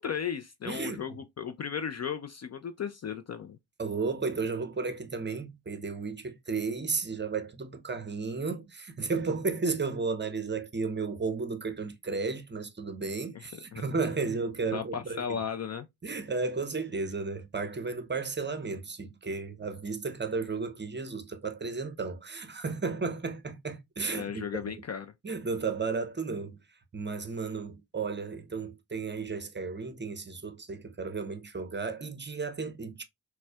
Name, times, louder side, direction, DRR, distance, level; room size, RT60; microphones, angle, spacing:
voice 1, 0.0-3.6 13.3-13.8 14.7-15.9 24.1-25.1, left 7 dB, 35° left, 0.4 m, -35 dB
voice 2, 0.6-1.0 3.8-15.2 16.0-24.4 25.2-26.6 26.9-33.0, right 4 dB, 25° right, 0.7 m, -33 dB
4.1 x 2.2 x 2.3 m
supercardioid pair, 40°, 46 cm